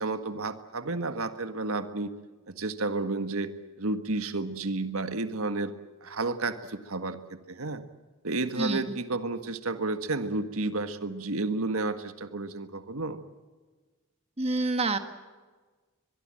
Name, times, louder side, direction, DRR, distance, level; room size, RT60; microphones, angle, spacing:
voice 1, 0.0-2.1 2.5-5.7 6.0-7.8 8.2-13.2, right 3 dB, 90° right, 9 dB, 1.6 m, -31 dB
voice 2, 14.4-15.0, right 3 dB, 30° right, 8 dB, 1.6 m, -27 dB
23.5 x 22.0 x 7.7 m, 1.4 s
head